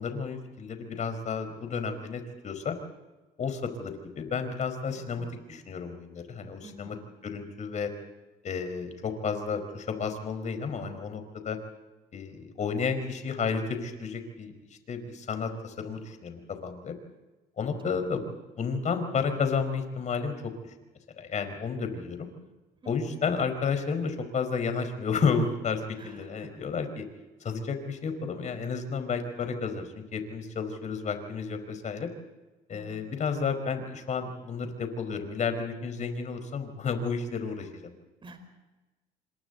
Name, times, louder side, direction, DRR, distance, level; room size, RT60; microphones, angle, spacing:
voice 1, 0.0-2.8 3.4-7.0 7.2-7.9 8.4-11.6 12.1-14.5 14.9-16.9 17.6-20.5 21.2-22.3 22.8-27.0 27.4-32.1 32.7-37.9, left 5 dB, 45° left, 8 dB, 4.9 m, -32 dB
voice 2, 4.9-5.3 6.6-7.0 22.8-23.2 25.9-26.1 32.7-33.0 38.2-38.4, right 2 dB, 30° right, 8 dB, 4.6 m, -48 dB
29.0 x 26.0 x 4.0 m, 1.1 s
cardioid pair, 110°, 17 cm